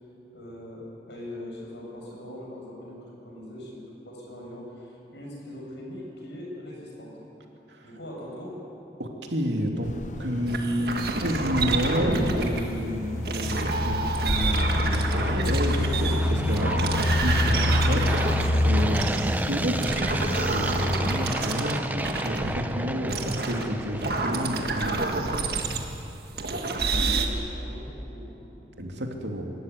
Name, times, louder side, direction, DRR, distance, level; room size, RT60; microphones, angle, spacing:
voice 1, 0.3-7.2 7.8-8.6 27.1-28.3, left 1 dB, 80° left, -2 dB, 7.0 m, -41 dB
voice 2, 9.0-9.9 10.2-18.4 18.6-25.3 28.8-29.5, equal, 85° right, 2 dB, 2.6 m, -30 dB
sound 1, 9.8-21.3, left 1 dB, 45° left, 0.9 m, -28 dB
sound 2, 10.5-12.6 13.2-19.4 19.8-22.6 23.1-26.0 26.4-27.3, right 3 dB, 60° right, 1.7 m, -29 dB
sound 3, 12.7-24.8, right 1 dB, 10° right, 0.6 m, -33 dB
25.0 x 13.5 x 9.6 m, 3.0 s
head